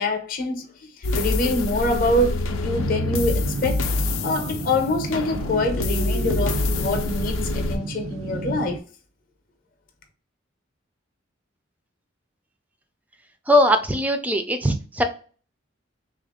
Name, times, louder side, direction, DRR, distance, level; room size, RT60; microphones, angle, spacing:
voice 1, 0.0-3.9 4.2-8.8, left 2 dB, 40° left, 0.6 m, -25 dB
sound 1, 1.0-7.8, left 2 dB, 80° left, 0.5 m, -26 dB
sound 2, 2.7-8.8, right 4 dB, 90° right, 0.4 m, -33 dB
voice 2, 13.5-15.0, equal, 10° right, 0.3 m, -20 dB
3.4 x 2.4 x 3.5 m
head